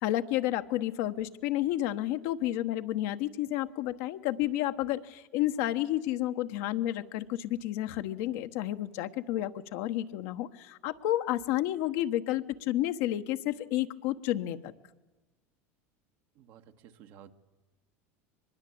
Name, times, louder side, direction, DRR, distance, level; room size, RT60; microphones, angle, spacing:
voice 1, 0.0-14.7, left 14 dB, 70° left, 8 dB, 1.2 m, -31 dB
voice 2, 16.3-17.3, right 9 dB, 60° right, 6 dB, 1.6 m, -53 dB
23.5 x 21.0 x 8.6 m, 1.1 s
supercardioid pair, 100°, 7 cm